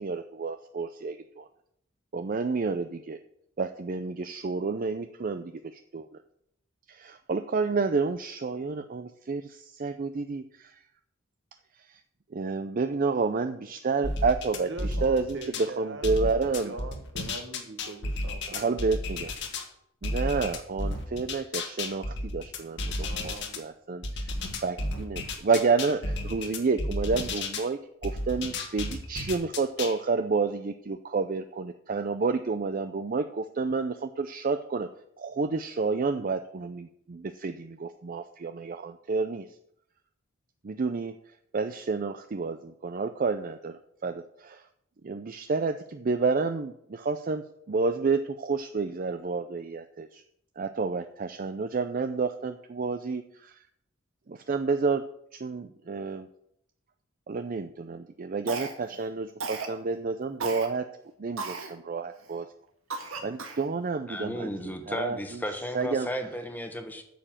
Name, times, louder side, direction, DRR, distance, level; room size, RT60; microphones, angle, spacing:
voice 1, 0.0-1.5 2.1-3.2 3.6-6.1 6.9-10.8 11.8-12.0 12.3-16.7 18.5-19.3 20.0-34.9 35.2-39.5 40.6-41.1 41.5-44.6 45.0-50.2 50.6-53.6 54.3-55.0 55.3-56.3 57.3-60.9 61.2-62.5 63.0-64.5 64.9-65.4 65.7-66.1, right 4 dB, 45° right, 9 dB, 0.5 m, -30 dB
sound 1, 14.0-15.7 16.0-19.7 20.0-23.6 24.0-27.7 28.0-30.0, left 2 dB, 60° left, 1.5 m, -32 dB
voice 2, 14.5-16.0 16.3-19.0 23.0-23.6, right 2 dB, 60° right, 8 dB, 1.3 m, -42 dB
Cough, 58.5-59.0 59.4-59.8 60.4-60.7 61.4-61.7 62.2-62.3 62.9-63.7, right 4 dB, 85° right, 1.8 m, -35 dB
voice 3, 64.1-67.0, equal, 10° left, 5 dB, 1.2 m, -34 dB
9.2 x 6.8 x 7.3 m, 0.75 s
head